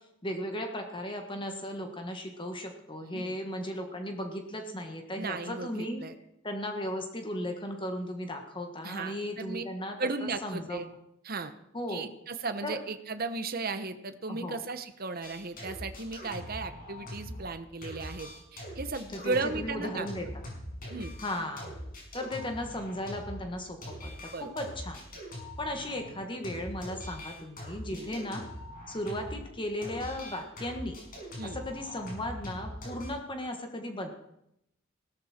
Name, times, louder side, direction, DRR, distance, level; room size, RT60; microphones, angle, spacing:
voice 1, 0.2-6.0 6.4-10.8 11.7-12.1 12.6-12.8 14.3-14.6 19.1-20.3 21.2-21.7 22.1-25.0 25.6-28.5 28.9-31.0 31.4-34.1, left 1 dB, 25° left, 4 dB, 1.6 m, -36 dB
voice 2, 5.2-6.1 8.8-9.6 10.0-10.9 11.2-11.5 11.9-20.1 20.9-21.1 24.3-24.5 27.9-28.2 31.4-31.6, right 3 dB, 50° right, 9 dB, 1.1 m, -36 dB
sound 1, 15.2-17.5 17.8-29.5 29.8-33.1, left 1 dB, 45° left, 5.9 m, -43 dB
16.5 x 13.5 x 4.4 m, 0.79 s
head